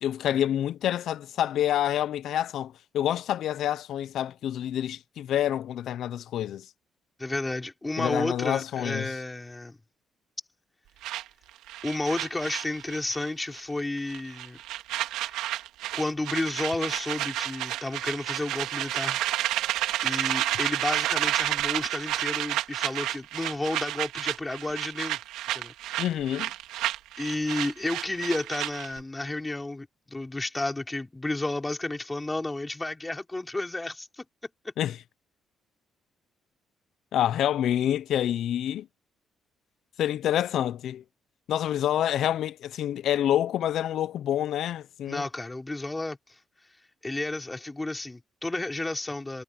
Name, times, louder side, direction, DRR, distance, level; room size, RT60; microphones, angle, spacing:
voice 1, 0.0-6.7 8.0-9.1 26.0-26.5 34.8-35.0 37.1-38.9 40.0-41.0 41.5-45.2, left 11 dB, 75° left, 0.7 m, -27 dB
voice 2, 7.2-9.8 11.8-14.6 15.3-15.4 15.9-19.2 20.0-25.2 25.5-25.7 27.2-34.2 45.1-46.2 47.0-49.4, left 2 dB, 15° left, 4.5 m, -32 dB
sound 1, 11.0-13.3 13.5-13.8 14.1-29.0, right 14 dB, 90° right, 2.7 m, -30 dB
Wind instrument woodwind instrument, 17.8-22.0, right 10 dB, 70° right, 6.2 m, -52 dB
cardioid pair, 75°, 0 cm